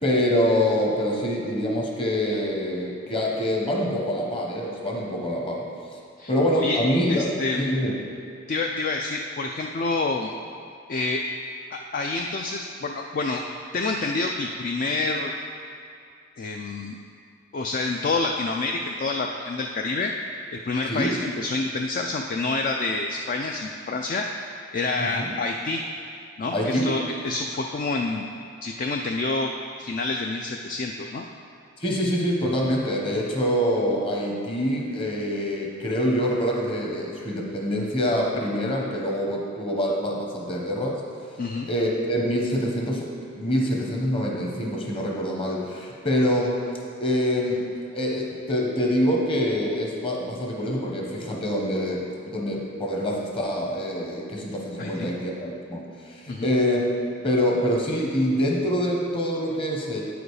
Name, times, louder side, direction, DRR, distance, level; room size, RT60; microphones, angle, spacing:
voice 1, 0.0-5.6 6.3-7.9 20.9-21.2 25.0-25.3 26.5-26.9 31.8-41.0 41.7-43.1 43.4-46.6 47.0-47.7 47.9-60.0, equal, 25° left, -1 dB, 1.1 m, -25 dB
voice 2, 6.2-6.8 7.1-7.7 8.5-10.3 10.9-11.2 11.7-13.4 13.7-15.3 16.4-17.0 17.5-20.1 20.5-24.3 24.7-25.8 26.4-28.3 28.6-29.5 29.8-31.2 41.4-41.7 54.8-55.1 56.3-56.5, left 3 dB, 45° left, 2 dB, 0.4 m, -28 dB
8.8 x 5.1 x 4.8 m, 2.5 s
head